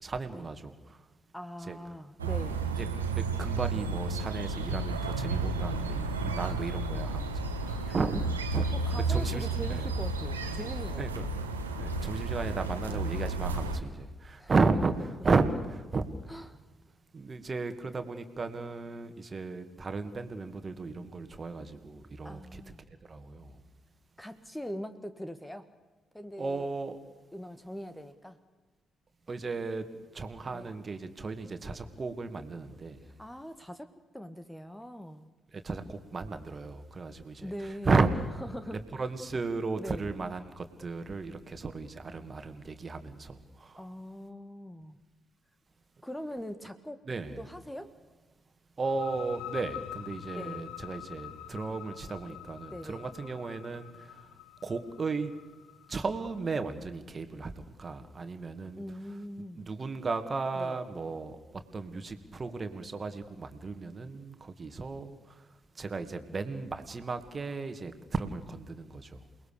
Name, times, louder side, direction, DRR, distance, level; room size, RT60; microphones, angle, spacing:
voice 1, 0.0-0.7 1.7-1.8 2.8-2.9 3.2-8.2 8.5-8.6 9.1-9.4 9.7-9.8 11.0-11.3 11.8-14.9 15.2-15.5 15.9-16.1 17.1-22.6 23.1-23.4 26.4-27.0 29.3-29.8 30.1-33.0 35.6-37.5 37.9-38.1 39.0-43.4 43.7-43.8 47.1-47.3 48.8-53.9 54.6-55.3 55.9-57.5 57.8-58.8 59.6-61.4 61.7-65.2 65.8-69.1, right 4 dB, 35° right, 8 dB, 2.3 m, -34 dB
voice 2, 1.3-2.7 7.8-8.3 8.5-11.3 12.8-13.0 14.4-14.5 16.3-16.6 22.2-22.8 24.2-25.7 26.1-26.7 27.3-28.4 30.4-30.7 33.0-35.3 37.4-38.1 38.4-39.1 39.8-40.1 43.8-45.0 46.0-47.0 47.4-48.0 50.3-50.6 52.7-53.1 58.8-59.6 60.5-60.8, equal, 5° left, 10 dB, 1.6 m, -42 dB
sound 1, 2.2-13.8, right 3 dB, 85° right, 1.5 m, -32 dB
sound 2, 48.8-56.3, left 13 dB, 65° left, 1.0 m, -46 dB
29.0 x 20.0 x 6.9 m, 1.2 s
figure-of-eight pair, 40°, 0 cm